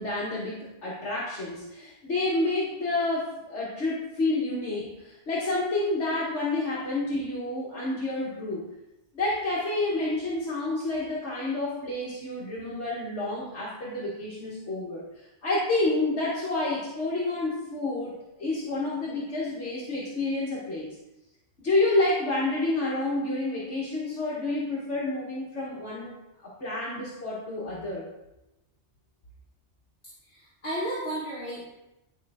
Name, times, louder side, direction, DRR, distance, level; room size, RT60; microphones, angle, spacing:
voice 1, 0.0-8.7 9.1-15.0 15.4-20.9 21.6-26.1 26.4-28.1, left 2 dB, 70° left, -7 dB, 1.9 m, -29 dB
voice 2, 30.2-31.6, right 1 dB, 45° left, -9 dB, 2.3 m, -33 dB
10.5 x 5.4 x 3.6 m, 0.95 s
omnidirectional pair, 1.2 m